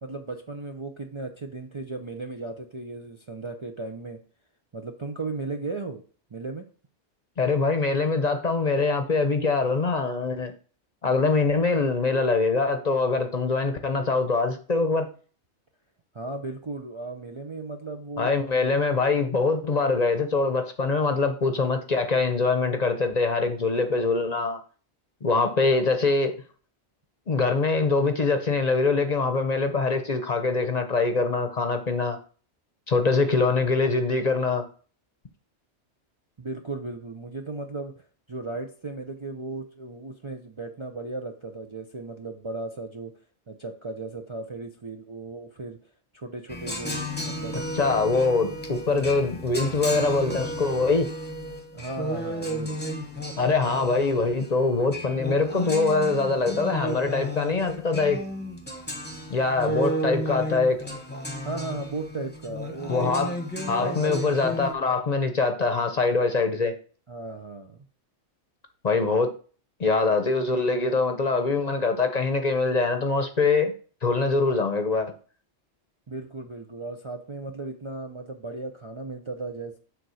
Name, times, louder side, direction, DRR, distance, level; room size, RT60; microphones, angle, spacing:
voice 1, 0.0-4.2 4.7-6.0 6.3-6.6 16.1-18.5 36.4-43.1 43.5-45.8 46.1-47.6 51.7-52.8 61.4-63.4 63.8-64.5 67.1-67.8 76.1-79.8, right 3 dB, 35° right, 0.5 m, -36 dB
voice 2, 7.4-10.5 11.0-15.1 18.2-24.6 25.2-26.3 27.3-32.2 32.9-34.6 47.7-51.1 53.4-58.2 59.3-60.8 62.9-63.3 63.7-66.7 68.8-69.3 69.8-73.7 74.0-75.1, left 3 dB, 40° left, 0.8 m, -23 dB
sound 1, 46.5-64.7, equal, 10° left, 1.1 m, -33 dB
6.9 x 3.8 x 6.3 m
omnidirectional pair, 1.2 m